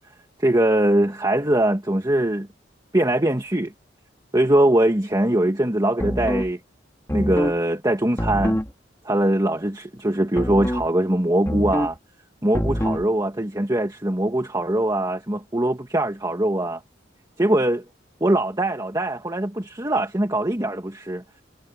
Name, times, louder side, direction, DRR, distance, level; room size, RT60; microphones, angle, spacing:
voice 1, 0.4-2.5 2.9-3.7 4.3-6.6 7.1-8.6 9.0-12.0 12.4-16.8 17.4-17.9 18.2-21.2, right 1 dB, 20° right, 1.9 m, -22 dB
sound 1, 6.0-6.5 7.1-7.6 8.2-8.7 10.4-10.9 11.5-12.0 12.5-13.1, equal, 15° left, 2.8 m, -25 dB
head